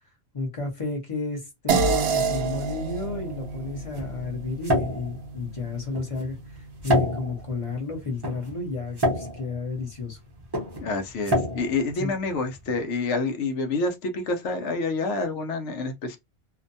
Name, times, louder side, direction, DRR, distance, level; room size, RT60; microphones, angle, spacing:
voice 1, 0.3-10.2 12.0-12.1, left 3 dB, 30° left, 0.8 m, -32 dB
sound 1, 1.7-6.4, right 4 dB, 65° right, 0.8 m, -28 dB
sound 2, 3.0-12.8, equal, 25° right, 0.6 m, -30 dB
voice 2, 10.8-16.2, left 3 dB, 80° left, 1.0 m, -28 dB
2.6 x 2.2 x 2.5 m
omnidirectional pair, 1.2 m